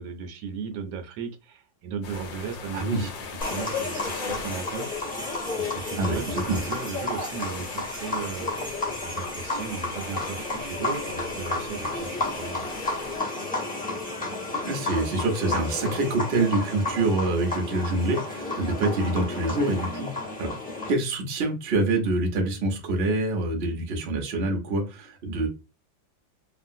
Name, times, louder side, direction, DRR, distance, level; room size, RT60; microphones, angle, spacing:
voice 1, 0.0-4.9 5.6-8.5 9.0-12.6, right 6 dB, 80° right, 5 dB, 1.3 m, -36 dB
sound 1, 2.0-13.2, left 5 dB, 80° left, 1.3 m, -41 dB
voice 2, 2.7-3.1 6.0-6.2 6.5-6.6 14.6-20.6 20.9-25.5, right 2 dB, 50° right, 1 dB, 0.8 m, -26 dB
sound 2, 3.4-20.9, left 2 dB, 10° left, 0.6 m, -32 dB
3.0 x 2.4 x 2.6 m, 0.30 s
omnidirectional pair, 2.0 m